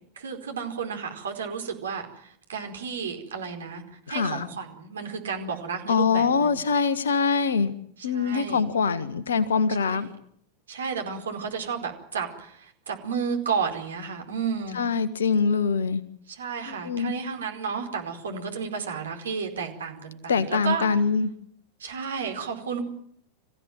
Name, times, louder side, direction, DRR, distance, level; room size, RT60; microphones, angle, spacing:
voice 1, 0.1-6.7 8.0-8.6 9.8-10.1 10.7-14.8 16.3-20.9 21.8-22.8, right 6 dB, 65° right, 4.7 m, -32 dB
voice 2, 4.1-4.5 5.9-7.7 8.0-10.1 14.7-16.0 16.7-17.1 20.3-21.3, left 5 dB, 65° left, 1.7 m, -24 dB
27.0 x 16.0 x 9.4 m
figure-of-eight pair, 90°, 0 cm